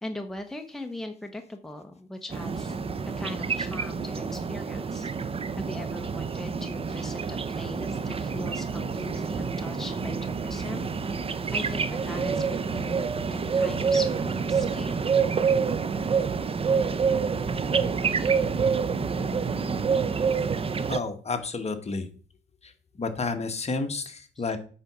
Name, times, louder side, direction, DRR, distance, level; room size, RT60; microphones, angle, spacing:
voice 1, 0.0-2.8 3.2-5.1 5.6-10.9 11.5-14.9 24.3-24.5, left 1 dB, ahead, 4 dB, 1.0 m, -39 dB
sound 1, 2.3-21.0, right 5 dB, 30° right, 0.6 m, -27 dB
voice 2, 20.9-22.1 22.6-22.7 23.0-24.6, left 4 dB, 30° left, 7 dB, 1.3 m, -30 dB
8.8 x 4.1 x 6.0 m, 0.42 s
cardioid pair, 90°, 20 cm